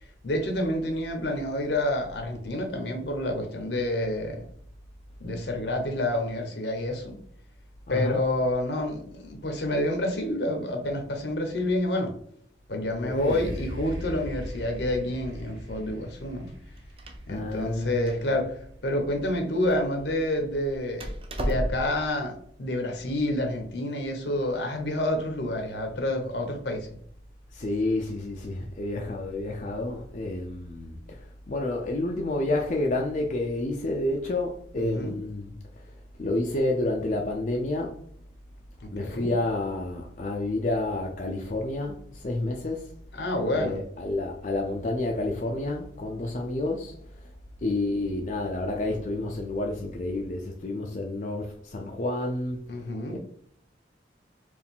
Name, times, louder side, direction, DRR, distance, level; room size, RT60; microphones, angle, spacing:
voice 1, 0.2-4.4 5.2-7.2 7.9-12.1 12.7-16.5 17.3-18.5 18.8-21.1 21.4-22.3 22.6-27.0 34.8-35.1 38.8-39.3 43.1-43.8 52.7-53.2, left 1 dB, 75° left, 0.9 m, -28 dB
voice 2, 7.9-8.3 13.0-13.5 17.3-18.3 27.5-31.0 31.5-35.5 36.2-38.0 38.9-42.9 43.5-46.9 47.6-52.6 53.1-53.2, left 2 dB, 45° left, 0.5 m, -29 dB
sound 1, 13.1-20.8 21.5-21.6, equal, 85° right, 1.1 m, -41 dB
Door, 16.5-22.1, equal, 30° right, 0.5 m, -36 dB
4.6 x 2.5 x 3.6 m
head